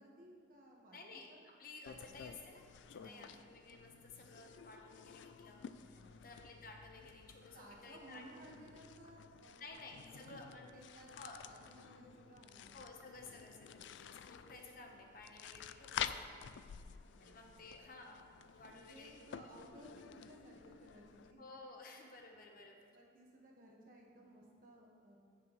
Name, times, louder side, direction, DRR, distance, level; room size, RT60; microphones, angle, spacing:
voice 1, 0.0-1.4 3.0-3.4 5.9-6.2 7.5-9.8 10.1-10.4 10.7-11.2 11.5-12.8 16.8-17.7 18.7-21.4 22.9-25.2, right 1 dB, 50° right, -2 dB, 1.4 m, -58 dB
voice 2, 0.9-7.6 7.8-8.2 9.6-10.6 11.1-11.4 12.7-16.4 17.2-19.3 21.4-22.9, left 3 dB, 50° left, 1 dB, 1.0 m, -55 dB
sound 1, 1.9-21.3, left 8 dB, 80° left, 0.3 m, -50 dB
15.0 x 6.2 x 3.1 m, 2.3 s
head